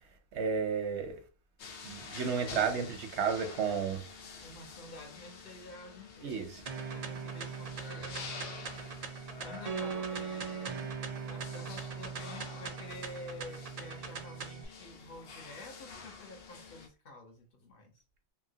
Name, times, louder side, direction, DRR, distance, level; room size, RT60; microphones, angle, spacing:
voice 1, 0.3-1.2 1.8-4.0 6.2-6.6, right 6 dB, 85° right, 1.0 m, -32 dB
sound 1, 1.6-16.9, left 5 dB, 85° left, 1.0 m, -48 dB
voice 2, 4.4-6.4 6.9-8.4 9.4-10.8 11.3-17.9, left 2 dB, 60° left, 1.0 m, -49 dB
sound 2, 6.7-14.7, right 6 dB, 50° right, 0.5 m, -40 dB
2.9 x 2.8 x 2.8 m
omnidirectional pair, 1.1 m